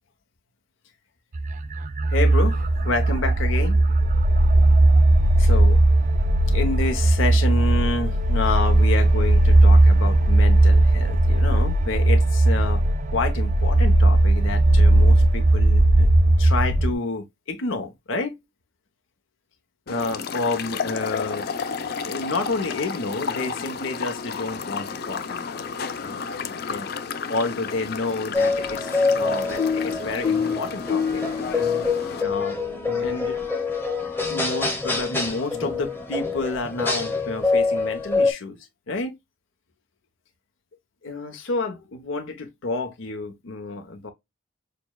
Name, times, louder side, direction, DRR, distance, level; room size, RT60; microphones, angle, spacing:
sound 1, 1.3-16.9, right 1 dB, 40° right, 0.4 m, -17 dB
voice 1, 2.1-3.8 5.4-5.8 6.5-12.8 13.1-16.1 16.4-18.3 19.9-21.5 22.0-26.9 27.3-31.2 32.2-32.6 33.0-33.4 34.3-38.6 38.9-39.1 41.0-44.1, left 3 dB, 80° left, 0.8 m, -29 dB
sound 2, 19.9-32.2, left 5 dB, 50° left, 0.4 m, -32 dB
sound 3, 28.3-38.3, left 4 dB, 10° left, 0.8 m, -25 dB
6.6 x 2.2 x 2.2 m
head